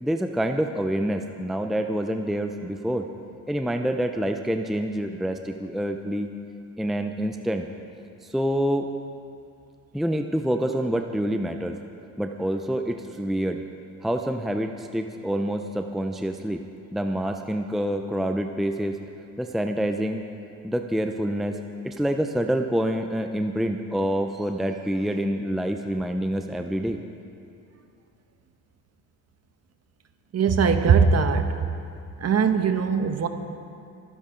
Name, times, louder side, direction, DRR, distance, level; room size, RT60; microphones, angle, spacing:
voice 1, 0.0-3.1 3.5-6.3 6.8-7.7 8.3-8.9 9.9-11.8 12.2-13.6 14.0-16.6 16.9-19.0 19.4-20.3 20.6-21.6 21.8-27.0, equal, ahead, 5 dB, 0.7 m, -27 dB
voice 2, 30.3-31.5 32.2-33.3, right 5 dB, 40° right, 7 dB, 1.2 m, -20 dB
24.5 x 10.0 x 3.9 m, 2.5 s
supercardioid pair, 80°, 40 cm